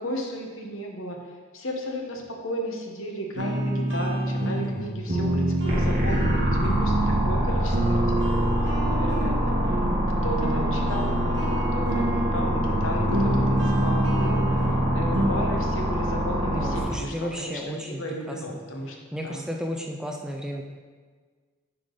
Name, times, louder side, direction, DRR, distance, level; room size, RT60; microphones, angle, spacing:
voice 1, 0.0-8.5 8.9-9.8 10.2-19.0 19.2-19.4, equal, 70° left, 1 dB, 1.0 m, -34 dB
sound 1, 3.4-15.3, right 1 dB, 55° right, 1.3 m, -27 dB
sound 2, 5.6-16.8, equal, 40° right, 1.7 m, -25 dB
voice 2, 16.5-18.0 18.3-18.4 19.1-20.6, equal, 5° right, 1 dB, 0.4 m, -33 dB
9.9 x 3.7 x 3.9 m, 1.5 s
head